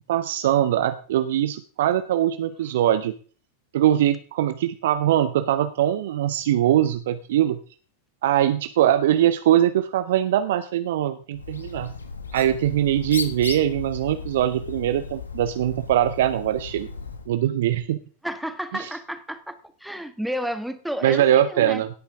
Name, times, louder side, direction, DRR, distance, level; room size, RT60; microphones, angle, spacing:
voice 1, 0.1-3.1 3.7-7.6 8.2-11.9 12.3-16.9 17.3-18.0 18.7-18.9 21.0-21.9, right 11 dB, 55° right, 11 dB, 0.7 m, -22 dB
Bird, 11.3-17.3, left 5 dB, 75° left, 1.5 m, -36 dB
voice 2, 18.2-19.5 19.8-21.8, equal, ahead, 9 dB, 1.4 m, -31 dB
17.5 x 8.5 x 3.6 m, 0.41 s
figure-of-eight pair, 90°, 0 cm